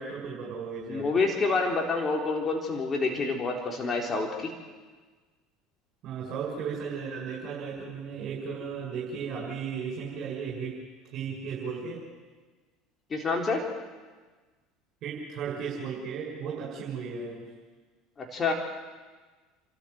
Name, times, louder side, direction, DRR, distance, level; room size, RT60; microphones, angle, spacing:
voice 1, 0.0-1.2 6.0-10.8 11.1-12.0 15.0-17.5, right 6 dB, 50° right, -4 dB, 6.3 m, -35 dB
voice 2, 0.9-4.5 13.1-13.6 18.2-18.5, left 3 dB, 30° left, 1 dB, 3.7 m, -28 dB
29.5 x 13.0 x 8.0 m, 1.4 s
hypercardioid pair, 70°, 0 cm